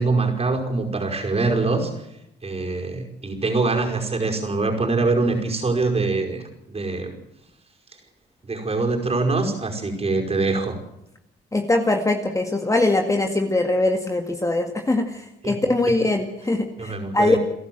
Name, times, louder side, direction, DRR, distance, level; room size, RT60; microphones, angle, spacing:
voice 1, 0.0-1.9 2.4-6.4 6.7-7.2 8.4-10.8 15.4-15.5 15.8-15.9 16.8-17.4, right 3 dB, 30° right, 2 dB, 5.2 m, -23 dB
voice 2, 11.5-17.4, left 2 dB, 15° left, 4 dB, 2.0 m, -22 dB
30.0 x 11.0 x 7.8 m, 0.84 s
cardioid pair, 90°, 20 cm